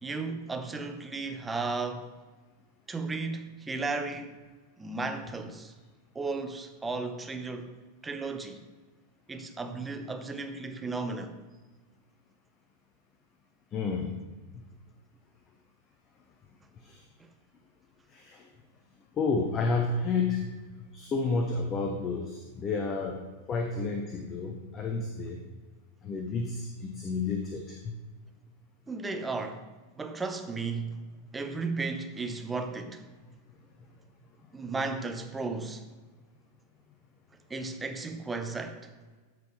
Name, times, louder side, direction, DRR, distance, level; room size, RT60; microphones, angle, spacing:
voice 1, 0.0-2.1 2.9-4.4 4.8-5.7 6.1-7.7 8.0-8.6 9.3-11.3 28.9-29.7 30.0-31.0 31.3-33.0 34.5-35.9 37.5-38.9, right 3 dB, 10° right, 0.8 m, -34 dB
voice 2, 13.7-14.2 14.5-14.6 16.8-17.0 18.1-18.5 19.1-25.4 26.0-27.9, left 4 dB, 25° left, 0.9 m, -31 dB
13.5 x 5.4 x 3.3 m
figure-of-eight pair, 90°, 0 cm